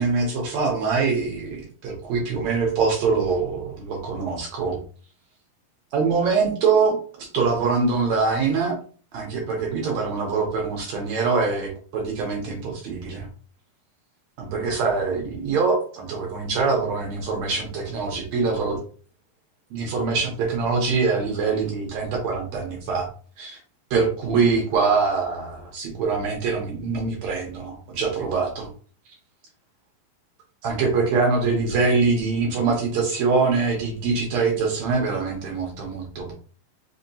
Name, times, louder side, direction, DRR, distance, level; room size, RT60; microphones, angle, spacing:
voice 1, 0.0-4.8 5.9-8.8 9.1-13.3 14.4-18.8 19.7-23.1 23.4-23.6 23.9-28.7 30.6-36.3, right 4 dB, 70° right, 0 dB, 1.8 m, -24 dB
5.2 x 2.8 x 2.7 m, 0.41 s
omnidirectional pair, 4.0 m